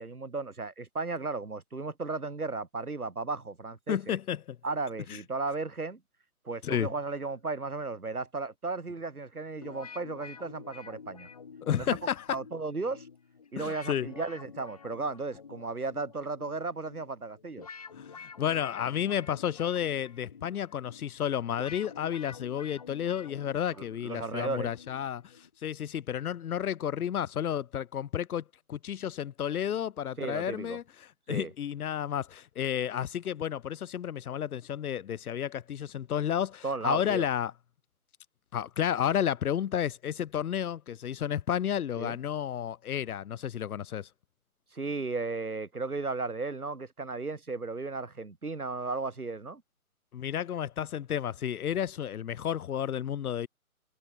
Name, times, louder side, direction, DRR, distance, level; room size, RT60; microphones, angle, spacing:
voice 1, 0.0-4.2 4.6-6.0 6.4-11.3 11.8-11.9 12.3-13.1 13.5-17.7 23.8-24.7 30.2-30.8 31.3-31.5 36.6-37.3 42.0-42.2 44.7-49.6, right 3 dB, 80° right, 3.1 m, -35 dB
voice 2, 3.9-4.6 5.1-5.2 6.6-6.9 11.6-12.3 13.6-14.1 18.0-25.3 25.6-30.8 31.3-37.5 38.5-44.1 50.1-53.5, left 9 dB, 80° left, 0.5 m, -31 dB
sound 1, 9.6-25.5, left 6 dB, 25° left, 0.7 m, -49 dB
figure-of-eight pair, 145°, 44 cm